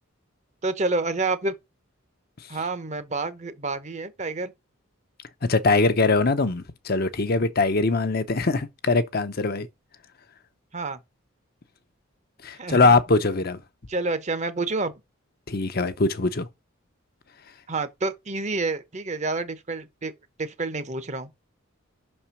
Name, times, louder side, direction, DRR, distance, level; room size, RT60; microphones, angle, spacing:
voice 1, 0.6-1.5 2.5-4.5 10.7-11.0 12.6-12.9 13.9-14.9 17.7-20.1 20.4-21.3, right 3 dB, 35° right, 0.8 m, -28 dB
voice 2, 5.4-9.7 12.4-13.6 15.5-16.5, left 3 dB, 50° left, 0.7 m, -22 dB
6.0 x 4.3 x 5.8 m
head